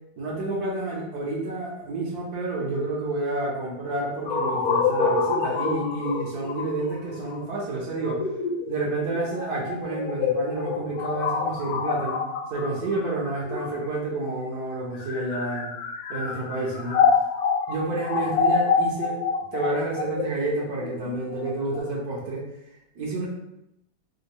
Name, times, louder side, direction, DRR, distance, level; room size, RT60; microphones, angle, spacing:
voice 1, 0.2-8.2 8.6-12.2 12.5-15.7 16.1-17.0 17.7-19.2 19.5-22.4 23.0-23.3, right 2 dB, 65° right, -3 dB, 1.3 m, -29 dB
sound 1, 4.3-14.1 14.8-21.8, left 5 dB, 70° left, 1.0 m, -26 dB
3.5 x 2.4 x 2.9 m, 0.82 s
omnidirectional pair, 1.8 m